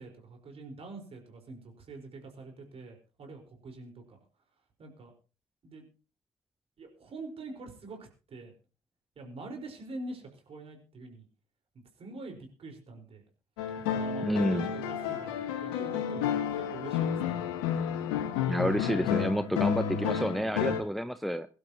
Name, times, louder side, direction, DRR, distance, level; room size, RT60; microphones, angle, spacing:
voice 1, 0.0-4.2 4.8-5.1 5.6-5.9 6.8-8.5 9.2-11.2 12.0-13.2 13.9-17.5, right 3 dB, 45° right, 3 dB, 4.6 m, -45 dB
sound 1, 13.6-20.8, left 8 dB, 70° left, 1.6 m, -31 dB
voice 2, 14.2-14.7 18.5-21.5, equal, ahead, 14 dB, 0.6 m, -29 dB
22.5 x 12.0 x 2.9 m, 0.34 s
figure-of-eight pair, 45°, 14 cm